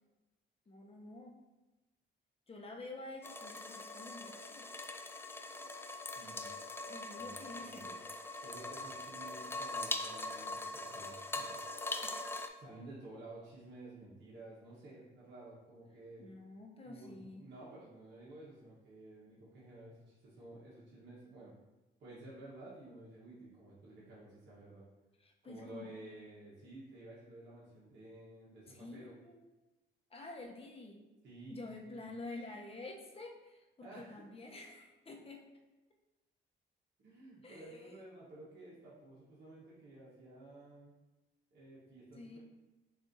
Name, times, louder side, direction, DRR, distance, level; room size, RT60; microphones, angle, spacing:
voice 1, 0.7-1.3 2.5-4.7 6.9-7.9 12.0-12.3 16.2-17.4 25.2-26.0 28.7-29.5 30.1-31.0 31.5-35.4 37.4-38.0 42.1-42.4, left 2 dB, 30° left, 1 dB, 0.9 m, -49 dB
sound 1, 3.2-12.5, left 2 dB, 10° left, 0.3 m, -42 dB
voice 2, 6.1-6.5 7.1-8.0 8.4-11.5 12.6-16.2 16.8-21.5 22.0-24.8 25.4-29.1 31.2-32.0 33.8-34.2 37.0-40.9 41.5-42.4, right 2 dB, 60° right, -8 dB, 1.4 m, -53 dB
7.0 x 2.7 x 2.7 m, 1.1 s
cardioid pair, 90°, 20 cm